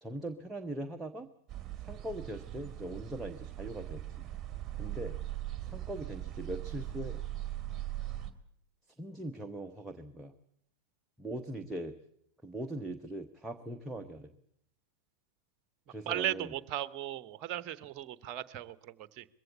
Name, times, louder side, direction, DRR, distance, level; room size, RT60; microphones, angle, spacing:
voice 1, 0.0-1.3 1.8-4.0 4.8-5.1 5.6-7.2 9.0-10.3 11.2-11.9 12.4-14.3 15.9-16.5, right 1 dB, 5° right, 5 dB, 1.0 m, -41 dB
sound 1, 1.5-8.3, right 13 dB, 25° right, 1.9 m, -40 dB
voice 2, 16.0-19.3, right 13 dB, 40° right, 16 dB, 0.9 m, -37 dB
21.5 x 16.0 x 8.6 m, 0.72 s
figure-of-eight pair, 90°, 0 cm